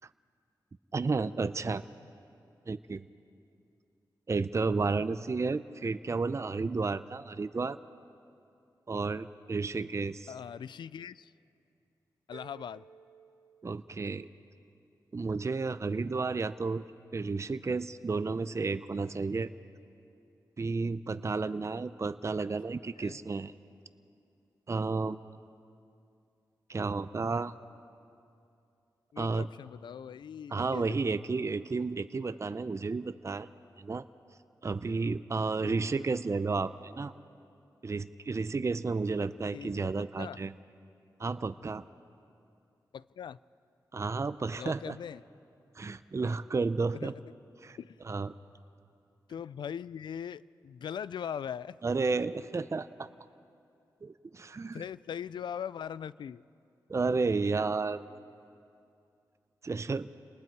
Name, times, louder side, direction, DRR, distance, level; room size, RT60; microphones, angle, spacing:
voice 1, 0.9-1.8 2.7-3.1 4.3-7.8 8.9-10.3 13.6-14.3 15.1-16.8 17.1-19.5 20.6-23.5 24.7-25.2 26.7-27.5 29.2-29.5 30.5-33.5 33.8-34.0 34.6-37.1 37.8-40.5 41.2-41.8 43.9-45.0 45.8-47.1 47.6-47.8 48.0-48.3 51.8-53.1 54.0-54.8 56.9-58.0 59.6-60.1, right 4 dB, 40° right, 13 dB, 0.6 m, -32 dB
voice 2, 10.3-11.3 12.3-12.8 23.0-23.2 29.1-30.8 35.6-36.1 39.5-39.9 40.2-40.4 42.9-43.4 44.6-45.2 47.0-47.2 47.8-48.0 49.3-51.8 54.7-56.4, left 8 dB, 80° left, 19 dB, 0.4 m, -40 dB
sound 1, 12.3-14.3, right 7 dB, 85° right, 1.5 m, -55 dB
28.5 x 19.5 x 4.7 m, 2.5 s
cardioid pair, 50°, 8 cm